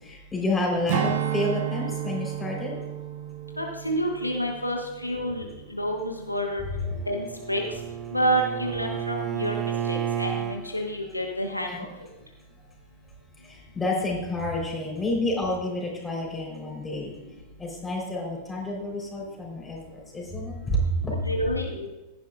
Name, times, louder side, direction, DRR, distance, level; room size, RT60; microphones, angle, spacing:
voice 1, 0.0-2.7 6.9-7.0 11.7-11.8 13.4-17.1 17.6-21.2, left 1 dB, 15° left, -1 dB, 3.9 m, -29 dB
Strum, 0.9-5.6 6.0-6.2, right 10 dB, 55° right, 0.8 m, -32 dB
voice 2, 3.6-6.6 7.1-7.6 8.1-9.6 9.9-11.7 21.2-21.9, right 1 dB, 85° left, 2 dB, 1.2 m, -28 dB
Bowed string instrument, 6.8-10.6, right 9 dB, 25° right, 0.8 m, -31 dB
16.0 x 11.0 x 2.4 m, 1.1 s
figure-of-eight pair, 90°, 0 cm